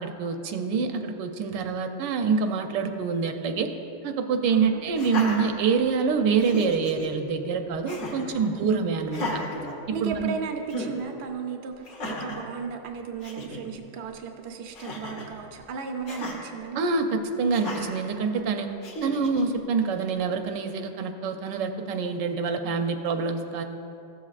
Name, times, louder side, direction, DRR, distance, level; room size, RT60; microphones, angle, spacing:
voice 1, 0.0-3.7 4.0-9.4 10.0-10.3 16.7-18.7 19.0-23.6, right 5 dB, 80° right, 6 dB, 1.3 m, -26 dB
voice 2, 4.5-4.8 8.3-8.6 9.9-16.8, right 5 dB, 60° right, 4 dB, 0.6 m, -35 dB
Laughter, 4.9-6.0 6.4-7.1 7.9-8.3 9.1-10.3 10.7-11.0 11.8-12.4 12.9-13.0 13.2-13.6 14.7-15.3 16.1-16.4 17.5-18.0 18.8-19.4, left 1 dB, 55° left, 1.5 m, -34 dB
14.5 x 7.3 x 2.4 m, 2.8 s
omnidirectional pair, 1.9 m